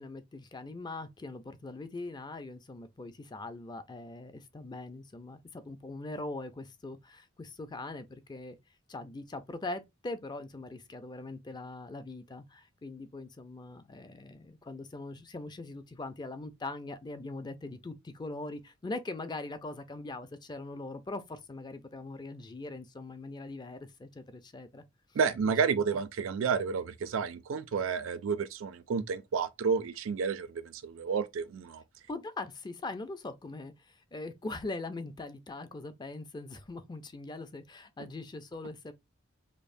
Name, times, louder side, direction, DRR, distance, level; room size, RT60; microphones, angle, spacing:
voice 1, 0.0-8.6 8.9-24.8 25.4-25.8 32.1-38.9, left 2 dB, 20° left, 0.4 m, -41 dB
voice 2, 25.2-31.8, right 6 dB, 75° right, 0.4 m, -31 dB
5.2 x 2.1 x 2.5 m
head